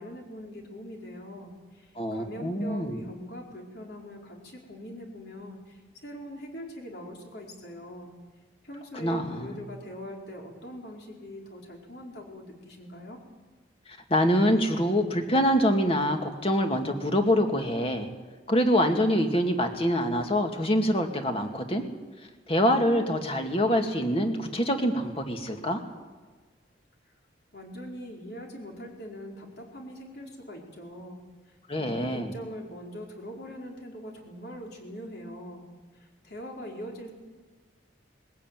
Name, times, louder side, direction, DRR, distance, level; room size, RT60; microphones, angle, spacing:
voice 1, 0.0-8.1 8.6-13.2 27.5-31.2 31.5-35.7 35.9-37.1, equal, 60° left, 0 dB, 4.7 m, -42 dB
voice 2, 2.0-3.0 8.9-9.6 14.1-18.1 18.5-21.8 22.5-25.8 31.7-32.3, equal, 30° left, 4 dB, 2.3 m, -25 dB
21.0 x 15.5 x 9.2 m, 1.4 s
head